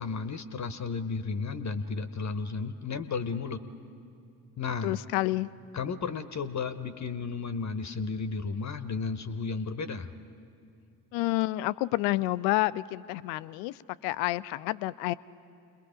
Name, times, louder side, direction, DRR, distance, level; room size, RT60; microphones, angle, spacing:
voice 1, 0.0-3.6 4.6-5.0 5.7-10.1, left 4 dB, 35° left, 10 dB, 0.9 m, -33 dB
voice 2, 4.8-5.5 11.1-15.1, left 18 dB, 75° left, 16 dB, 0.6 m, -29 dB
28.0 x 21.5 x 5.1 m, 2.5 s
hypercardioid pair, 45°, 47 cm